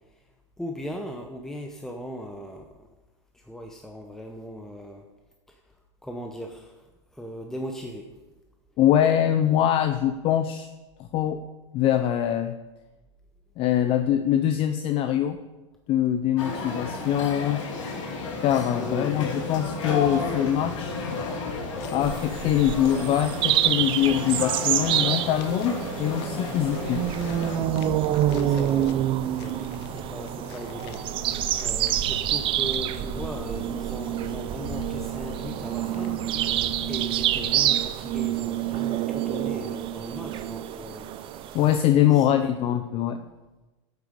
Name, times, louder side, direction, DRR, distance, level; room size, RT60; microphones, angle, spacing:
voice 1, 0.6-2.7 3.3-5.1 5.5-5.6 6.0-6.9 7.1-8.1 18.7-19.3 28.3-29.0 29.3-31.0 31.6-36.6 36.9-41.6 42.1-42.4, equal, 5° left, 2 dB, 0.7 m, -38 dB
voice 2, 8.8-10.7 11.1-11.4 11.7-12.6 13.6-15.4 15.9-17.6 18.4-21.0 21.9-27.0 41.5-43.2, left 11 dB, 35° left, 9 dB, 0.6 m, -23 dB
sound 1, 16.4-27.6, left 3 dB, 80° left, 2.6 m, -33 dB
sound 2, 20.0-37.7, left 9 dB, 60° left, 0.9 m, -43 dB
sound 3, 22.0-41.8, right 12 dB, 35° right, 0.5 m, -27 dB
8.6 x 8.2 x 5.2 m, 1.1 s
hypercardioid pair, 125°, 16 cm